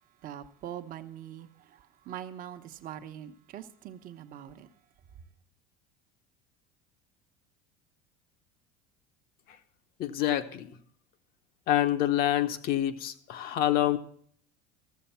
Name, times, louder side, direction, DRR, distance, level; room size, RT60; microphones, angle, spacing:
voice 1, 0.2-4.7, right 10 dB, 50° right, 1.0 m, -43 dB
voice 2, 10.0-10.7 11.7-14.0, left 13 dB, 55° left, 1.0 m, -27 dB
14.0 x 7.0 x 5.7 m
supercardioid pair, 105°, 18 cm